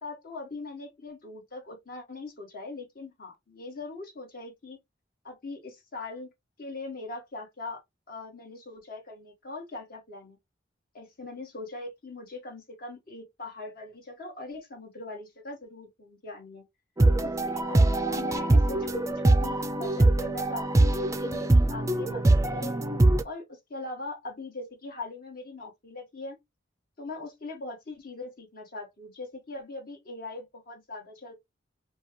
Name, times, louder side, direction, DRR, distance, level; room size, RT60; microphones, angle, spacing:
voice 1, 0.0-4.8 5.2-6.3 6.6-7.8 8.1-10.4 10.9-16.6 17.2-22.8 23.2-26.4 27.0-31.3, left 2 dB, 55° left, 1.7 m, -41 dB
sound 1, 17.0-23.2, right 2 dB, 15° right, 0.4 m, -23 dB
5.3 x 2.3 x 3.1 m
head